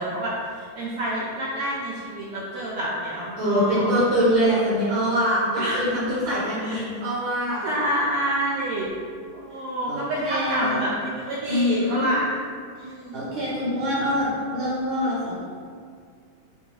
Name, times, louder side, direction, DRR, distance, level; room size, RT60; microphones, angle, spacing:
voice 1, 0.0-4.1 5.6-5.8 6.6-6.8 7.6-8.9 9.3-12.3 12.8-13.3, right 1 dB, 90° right, -6 dB, 1.2 m, -28 dB
voice 2, 3.4-7.6 9.9-10.9 11.5-12.1 13.1-15.5, equal, 60° right, -9 dB, 2.8 m, -24 dB
7.9 x 3.0 x 4.5 m, 2.1 s
omnidirectional pair, 3.7 m